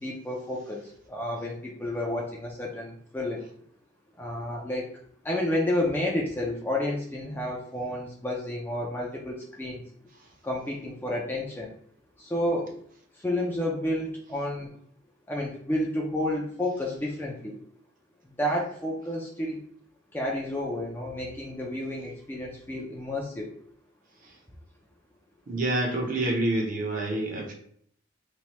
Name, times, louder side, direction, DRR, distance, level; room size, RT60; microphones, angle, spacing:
voice 1, 0.0-3.4 4.2-4.9 5.2-9.8 10.4-11.7 12.2-12.7 13.1-14.7 15.3-17.6 18.4-19.6 20.1-23.5, left 1 dB, 10° left, -2 dB, 0.3 m, -30 dB
voice 2, 25.5-27.5, right 2 dB, 40° right, 1 dB, 0.6 m, -27 dB
3.1 x 2.2 x 2.8 m, 0.62 s
head